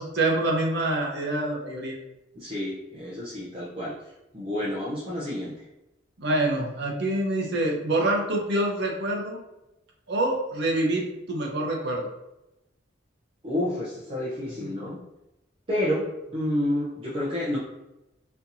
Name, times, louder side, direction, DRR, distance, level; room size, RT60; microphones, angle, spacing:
voice 1, 0.0-2.0 6.2-9.4 10.1-12.1 14.6-14.9, right 2 dB, 60° right, 0 dB, 0.8 m, -26 dB
voice 2, 2.3-4.0 4.3-5.6 13.4-15.0 15.7-16.1 16.3-17.6, left 1 dB, 30° right, -8 dB, 0.7 m, -29 dB
4.2 x 2.7 x 2.7 m, 0.92 s
head